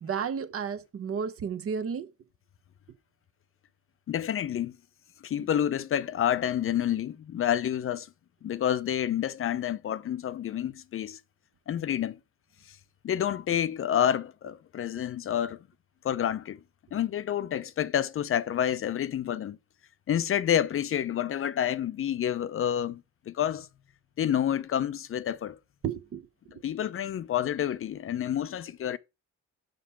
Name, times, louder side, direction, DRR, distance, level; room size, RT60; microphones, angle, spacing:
voice 1, 0.0-2.1 25.8-26.6, right 7 dB, 50° right, 0.9 m, -33 dB
voice 2, 4.1-4.8 5.2-8.1 8.4-11.2 11.7-12.2 12.7-12.8 13.0-15.6 16.0-16.6 16.9-19.6 20.1-23.7 24.2-25.6 26.6-29.0, left 10 dB, 45° left, 0.5 m, -29 dB
5.5 x 5.2 x 5.6 m
cardioid pair, 90°, 30 cm